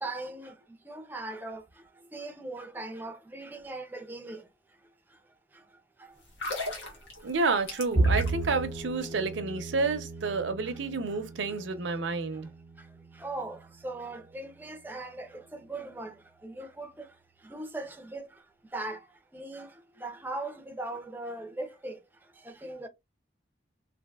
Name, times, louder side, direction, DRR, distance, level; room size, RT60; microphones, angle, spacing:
voice 1, 0.0-0.5 0.9-1.6 2.1-4.4 13.2-15.3 15.7-16.1 16.4-16.9 17.5-18.3 18.7-19.0 19.3-19.7 20.0-22.0 22.6-22.9, right 2 dB, 10° right, 0.4 m, -38 dB
sound 1, 6.2-8.6 8.9-9.1, left 2 dB, 85° left, 1.3 m, -37 dB
voice 2, 7.2-12.5, right 3 dB, 85° right, 0.6 m, -30 dB
Bowed string instrument, 8.0-14.3, right 2 dB, 15° left, 0.9 m, -34 dB
3.4 x 2.5 x 2.3 m
head